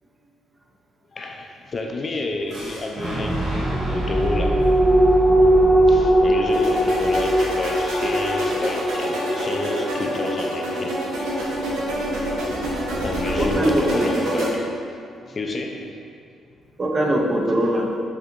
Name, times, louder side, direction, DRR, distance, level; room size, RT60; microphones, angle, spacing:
voice 1, 1.1-4.6 5.9-11.0 13.0-14.5 15.3-15.9, left 2 dB, 40° left, 2 dB, 0.4 m, -29 dB
Boom, 2.5-8.4, right 1 dB, 55° right, 1.4 m, -28 dB
sound 1, 3.6-14.4 14.8-14.9, right 1 dB, 20° left, 0.8 m, -22 dB
sound 2, 6.5-14.5, right 1 dB, 85° right, 0.8 m, -28 dB
voice 2, 13.3-14.5 16.8-18.0, right 1 dB, 35° right, 0 dB, 0.6 m, -22 dB
7.1 x 2.7 x 2.5 m, 2.3 s
cardioid pair, 90°, 0 cm